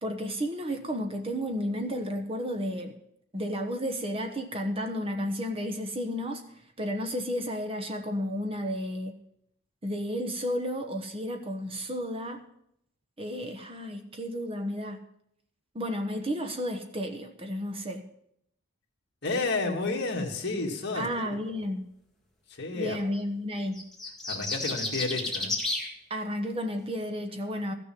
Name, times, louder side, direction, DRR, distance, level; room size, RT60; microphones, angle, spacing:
voice 1, 0.0-2.9 3.3-6.4 6.8-9.1 9.8-12.4 13.2-15.0 15.7-18.0 20.9-21.8 22.7-23.8 26.1-27.7, equal, 25° right, 4 dB, 1.1 m, -32 dB
voice 2, 19.2-21.1 21.5-21.6 22.5-23.0 24.3-25.5, left 3 dB, 50° left, 1 dB, 2.0 m, -31 dB
sound 1, 23.8-25.9, left 2 dB, ahead, 1.9 m, -31 dB
14.5 x 6.7 x 7.6 m, 0.73 s
head